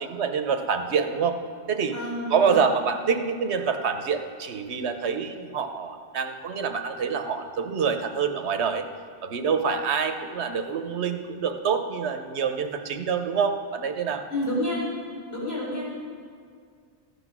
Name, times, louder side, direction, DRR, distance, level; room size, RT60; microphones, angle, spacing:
voice 1, 0.0-1.4 1.7-1.9 2.3-8.9 9.2-14.2, right 6 dB, 75° right, 7 dB, 1.1 m, -26 dB
voice 2, 1.9-2.6 14.3-14.8 15.3-15.9, left 1 dB, 60° left, -7 dB, 4.7 m, -29 dB
14.5 x 9.9 x 6.1 m, 2.1 s
omnidirectional pair, 1.2 m